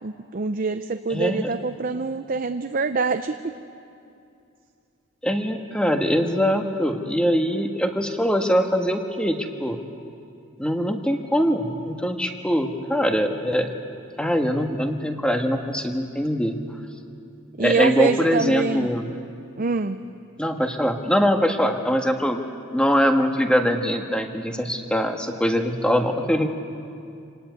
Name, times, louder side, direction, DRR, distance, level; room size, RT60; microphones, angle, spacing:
voice 1, 0.0-3.4 17.6-18.9 19.6-20.0, right 4 dB, 45° right, 8 dB, 0.6 m, -25 dB
voice 2, 1.1-1.5 5.2-9.8 10.6-13.7 14.2-16.6 17.6-19.1 20.4-22.4 22.7-26.6, equal, 5° left, 4 dB, 1.5 m, -22 dB
26.5 x 19.0 x 9.4 m, 2.5 s
head